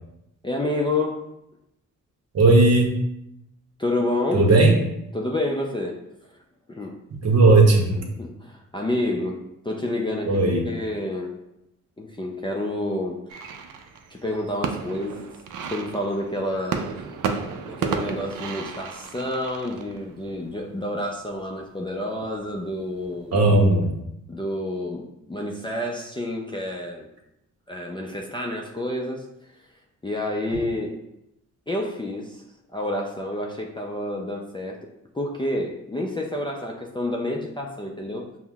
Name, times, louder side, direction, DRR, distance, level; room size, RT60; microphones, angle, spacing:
voice 1, 0.4-1.3 3.8-4.5 5.1-6.0 6.7-7.0 8.2-11.3 12.0-13.7 14.1-15.3 15.7-17.0 17.7-23.5 24.3-27.1 27.7-29.6 30.0-31.0 31.7-32.4 32.7-34.9 35.1-38.3, left 1 dB, 15° left, -1 dB, 0.3 m, -29 dB
voice 2, 2.3-2.9 4.3-4.7 7.2-8.1 10.3-10.6 23.3-23.9, right 2 dB, 50° right, 1 dB, 0.8 m, -16 dB
sound 1, 13.3-23.4, right 6 dB, 75° right, 0.4 m, -33 dB
5.4 x 2.1 x 2.3 m, 0.84 s
cardioid pair, 85°, 32 cm